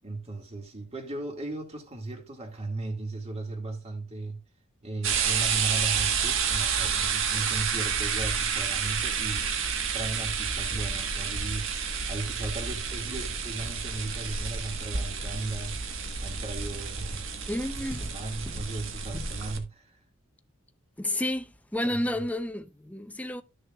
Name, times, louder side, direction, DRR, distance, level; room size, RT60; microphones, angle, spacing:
voice 1, 0.0-4.4 4.8-9.5 9.9-17.3 18.0-20.0 21.8-22.0, right 2 dB, 30° right, 2.1 m, -36 dB
sound 1, 5.0-19.6, right 6 dB, 65° right, 1.5 m, -30 dB
voice 2, 17.5-18.1 18.5-18.6 19.1-19.3 21.0-23.4, left 1 dB, 5° left, 0.6 m, -31 dB
12.5 x 6.4 x 2.4 m
head